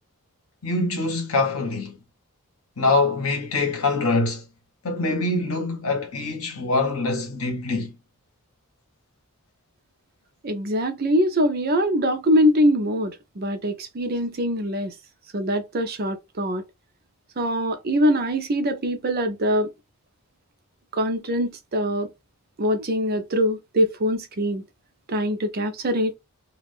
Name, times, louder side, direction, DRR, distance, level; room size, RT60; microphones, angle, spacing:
voice 1, 0.6-2.0 2.8-4.4 4.8-7.9, left 3 dB, 70° left, 1.1 m, -24 dB
voice 2, 10.4-14.9 15.3-16.6 17.4-19.7 20.9-22.1 22.6-24.6 25.1-26.1, equal, 45° right, 0.5 m, -23 dB
2.5 x 2.3 x 3.5 m
head